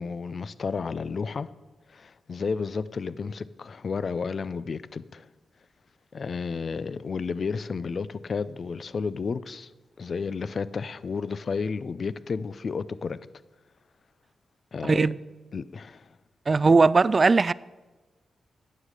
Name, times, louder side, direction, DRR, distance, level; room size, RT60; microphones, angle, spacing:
voice 1, 0.0-1.5 1.9-5.3 6.1-9.7 10.0-13.2 14.7-15.1 15.5-16.2, left 5 dB, 60° left, 0.4 m, -32 dB
voice 2, 14.8-15.2 16.5-17.5, right 4 dB, 45° right, 0.3 m, -19 dB
9.8 x 7.4 x 6.4 m
supercardioid pair, 45°, 0 cm